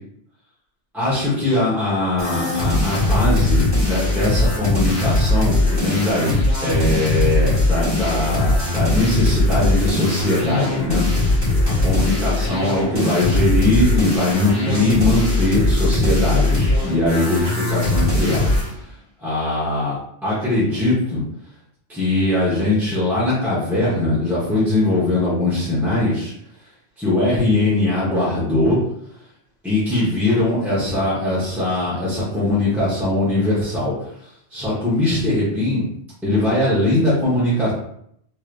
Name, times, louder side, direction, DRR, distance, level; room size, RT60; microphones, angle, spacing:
voice 1, 0.9-11.0 11.6-18.6 19.2-21.2 21.9-26.3 27.0-28.8 29.6-33.9 34.5-35.9 36.2-37.7, left 2 dB, ahead, -10 dB, 1.0 m, -21 dB
sound 1, 2.2-18.7, left 2 dB, 20° right, 1.5 m, -20 dB
3.3 x 3.0 x 2.5 m, 0.71 s
omnidirectional pair, 1.2 m